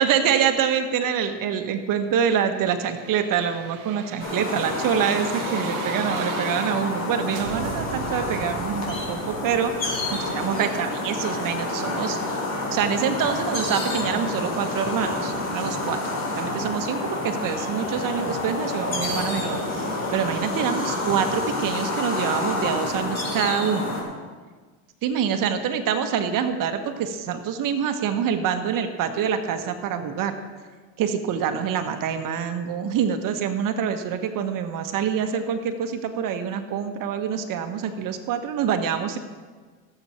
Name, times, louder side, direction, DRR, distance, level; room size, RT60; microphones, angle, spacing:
voice 1, 0.0-12.4 12.7-16.0 16.3-24.0 25.0-30.4 31.0-39.2, right 8 dB, 55° right, 7 dB, 1.4 m, -26 dB
sound 1, 2.3-7.0 7.3-12.2 12.5-12.6, right 9 dB, 85° right, 0.9 m, -39 dB
sound 2, 4.2-24.0, left 2 dB, 40° left, 4.2 m, -28 dB
17.5 x 8.0 x 4.4 m, 1.4 s
supercardioid pair, 95°, 39 cm